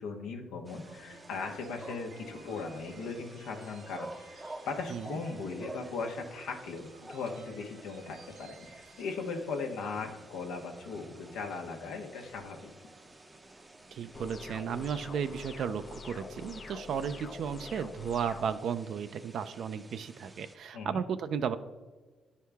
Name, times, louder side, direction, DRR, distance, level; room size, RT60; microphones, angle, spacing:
voice 1, 0.0-12.7 20.7-21.0, left 4 dB, 90° left, 3 dB, 1.0 m, -38 dB
sound 1, 0.6-20.6, right 2 dB, 15° right, 0.6 m, -51 dB
sound 2, 0.8-17.0, right 3 dB, 90° right, 1.4 m, -57 dB
voice 2, 13.9-21.6, right 7 dB, 65° right, 10 dB, 0.4 m, -34 dB
sound 3, 14.1-18.5, left 4 dB, 40° left, 0.5 m, -45 dB
9.9 x 4.7 x 3.5 m, 1.3 s
cardioid pair, 90°, 0 cm